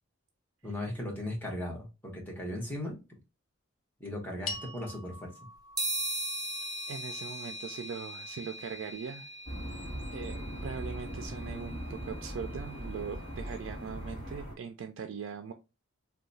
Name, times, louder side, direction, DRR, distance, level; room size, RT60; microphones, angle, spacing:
voice 1, 0.6-3.0 4.0-5.3, left 1 dB, 10° left, -2 dB, 0.9 m, -37 dB
sound 1, 4.5-8.9, left 3 dB, 75° left, 0.7 m, -46 dB
sound 2, 5.8-13.4, right 1 dB, 20° right, 0.6 m, -40 dB
voice 2, 6.9-9.3 9.7-9.9 10.1-15.5, right 6 dB, 70° right, 7 dB, 0.3 m, -41 dB
sound 3, 9.4-14.5, equal, 30° left, 1.8 m, -40 dB
2.9 x 2.2 x 3.8 m, 0.28 s
head